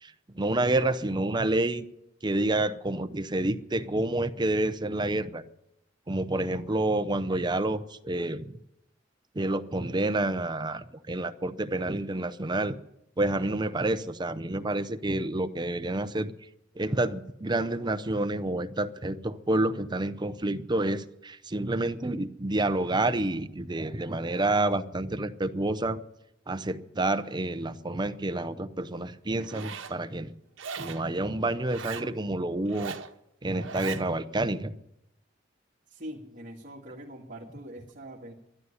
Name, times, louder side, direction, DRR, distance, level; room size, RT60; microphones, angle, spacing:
voice 1, 0.0-1.9 2.2-5.4 6.1-8.6 9.3-12.8 13.2-16.3 16.8-26.0 26.5-30.3 30.8-32.9 33.4-34.7, right 2 dB, 25° right, 11 dB, 0.7 m, -29 dB
Zipper (clothing), 29.4-30.0 30.6-31.1 31.6-32.1 32.6-33.1 33.6-34.0, right 6 dB, 90° right, 1.0 m, -39 dB
voice 2, 35.9-38.3, right 1 dB, 45° right, -3 dB, 1.9 m, -43 dB
12.5 x 11.0 x 9.7 m, 0.84 s
head